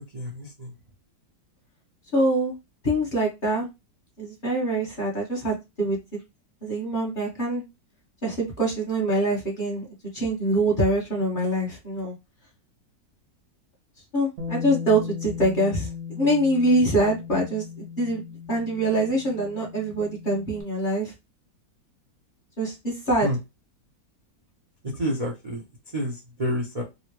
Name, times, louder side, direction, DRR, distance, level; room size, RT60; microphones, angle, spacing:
voice 1, 0.1-0.7 23.2-23.4 24.9-25.6 25.9-26.8, equal, 90° right, -2 dB, 0.3 m, -29 dB
voice 2, 2.1-2.5 2.8-3.7 4.2-6.0 6.6-7.6 8.2-9.9 10.1-12.1 14.1-21.1 22.6-23.3, right 1 dB, 35° left, -4 dB, 1.1 m, -24 dB
Bass guitar, 14.4-20.6, left 7 dB, 60° right, 0.9 m, -37 dB
3.9 x 2.1 x 3.0 m, 0.23 s
omnidirectional pair, 2.0 m